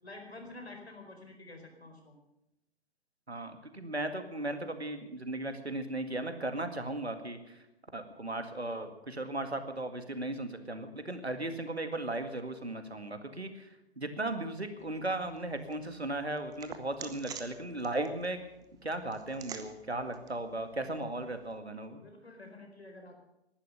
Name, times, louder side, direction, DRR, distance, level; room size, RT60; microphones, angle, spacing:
voice 1, 0.0-2.2 22.0-23.2, left 2 dB, 80° left, 3 dB, 4.6 m, -49 dB
voice 2, 3.3-7.7 7.9-18.4 18.8-22.0, right 2 dB, 85° right, 8 dB, 2.1 m, -36 dB
sound 1, 14.8-21.6, right 7 dB, 10° right, 0.9 m, -50 dB
18.5 x 11.5 x 6.8 m, 0.92 s
figure-of-eight pair, 120°, 31 cm